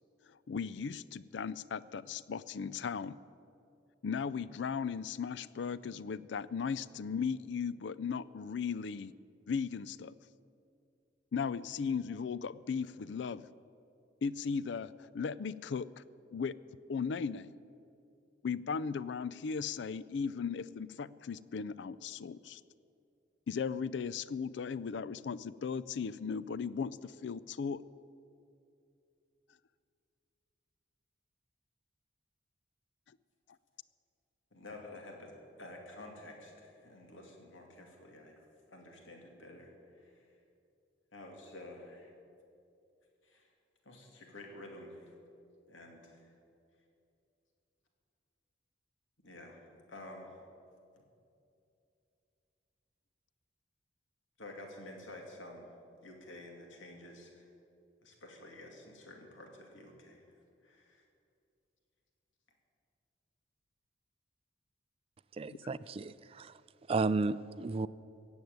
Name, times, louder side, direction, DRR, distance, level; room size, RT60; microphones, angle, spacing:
voice 1, 0.5-3.2 4.0-9.1 9.5-10.1 11.3-13.5 14.2-15.9 16.3-16.6 16.9-17.5 18.4-22.6 23.5-27.8 65.5-65.6, left 6 dB, 65° left, 18 dB, 0.4 m, -37 dB
voice 2, 34.5-38.4 38.7-40.2 41.1-42.1 43.2-43.4 43.8-45.1 45.7-46.3 49.2-49.6 49.9-50.4 54.4-55.7 56.0-57.5 58.0-60.2 60.6-61.0, left 1 dB, 90° left, 1 dB, 2.6 m, -50 dB
voice 3, 65.4-66.5 66.9-67.9, right 3 dB, 30° right, 16 dB, 0.3 m, -33 dB
15.5 x 8.0 x 9.4 m, 2.6 s
head